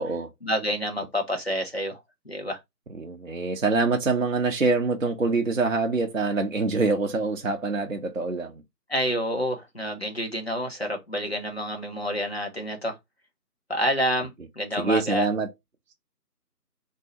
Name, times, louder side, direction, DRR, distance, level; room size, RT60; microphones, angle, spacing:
voice 1, 0.4-2.0 2.2-2.6 8.9-12.9 13.7-14.3 14.6-15.3, equal, 40° left, 0.8 m, -28 dB
voice 2, 3.0-8.6 14.8-15.5, right 3 dB, 55° right, 0.5 m, -25 dB
2.6 x 2.2 x 4.0 m
figure-of-eight pair, 165°, 49 cm